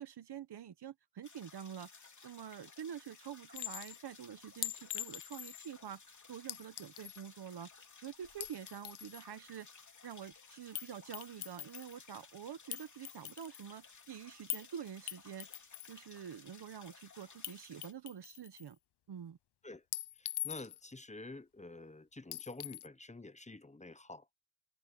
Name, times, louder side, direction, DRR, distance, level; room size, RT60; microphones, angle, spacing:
voice 1, 0.0-6.0 6.3-7.7 8.0-9.7 10.0-15.5 15.9-18.8 19.1-19.4, right 9 dB, 85° right, 1.2 m, -47 dB
sound 1, 1.2-17.9, left 5 dB, 50° left, 3.3 m, -58 dB
Chink clink, 3.5-4.0 4.6-5.7 6.5-7.2 8.2-9.2 10.7-10.9 11.1-12.0 12.7-13.7 14.5-14.7 15.1-15.9 17.4-17.5 17.8-18.7 19.9-20.9 22.3-22.9, left 13 dB, 90° left, 0.6 m, -42 dB
voice 2, 20.2-24.2, left 2 dB, 20° left, 1.0 m, -49 dB
wide cardioid pair, 90°, 38 cm